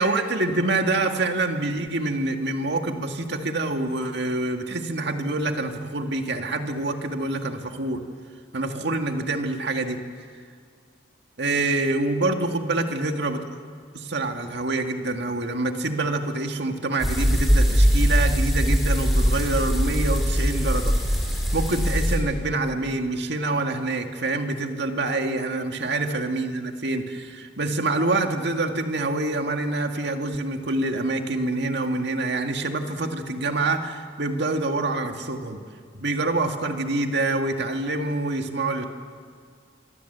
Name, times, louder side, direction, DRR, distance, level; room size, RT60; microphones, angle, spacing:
voice 1, 0.0-8.0 8.5-10.0 11.4-13.4 13.9-20.9 21.5-35.6 35.9-38.9, right 2 dB, 60° right, 5 dB, 1.9 m, -26 dB
sound 1, 17.0-22.2, equal, ahead, 6.3 m, -21 dB
25.5 x 24.5 x 8.1 m, 2.1 s
head